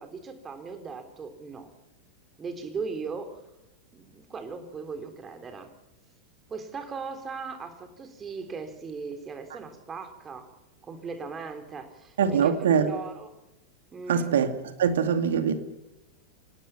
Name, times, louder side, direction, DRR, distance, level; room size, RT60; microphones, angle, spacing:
voice 1, 0.0-1.7 2.4-3.4 3.9-5.7 6.5-10.5 10.8-13.3 13.9-14.3, right 5 dB, 20° right, 3.6 m, -38 dB
voice 2, 12.2-12.9 14.1-14.5 14.8-15.5, right 7 dB, 60° right, 2.6 m, -23 dB
27.5 x 19.0 x 5.9 m
figure-of-eight pair, 90°, 0 cm